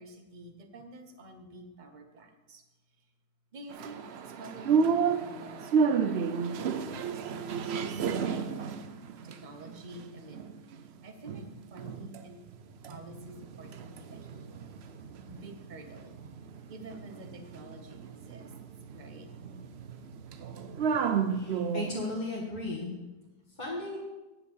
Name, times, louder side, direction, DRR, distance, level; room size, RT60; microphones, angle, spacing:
voice 1, 0.0-2.6 3.0-3.1 3.5-7.9 8.2-8.6 9.2-10.4 10.8-12.4 12.9-14.5 15.3-16.2 16.7-18.5 18.9-19.3 23.3-23.5, right 1 dB, 35° right, 6 dB, 0.9 m, -48 dB
sound 1, 3.7-10.9 11.3-12.2 12.5-22.1, right 6 dB, 65° right, 0.6 m, -32 dB
voice 2, 21.3-23.0 23.6-24.0, left 2 dB, 25° left, -6 dB, 1.9 m, -35 dB
10.0 x 5.2 x 7.4 m, 1.1 s
omnidirectional pair, 1.7 m